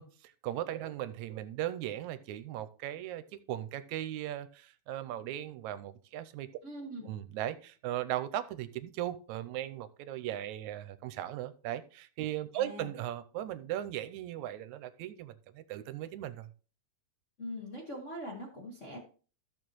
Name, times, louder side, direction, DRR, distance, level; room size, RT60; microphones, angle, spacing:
voice 1, 0.0-3.2 3.5-6.5 7.0-16.5, right 12 dB, 80° right, 2.0 m, -38 dB
voice 2, 6.6-7.1 12.5-12.9 17.4-19.0, equal, 30° left, 1.6 m, -42 dB
14.0 x 6.5 x 3.1 m
omnidirectional pair, 3.4 m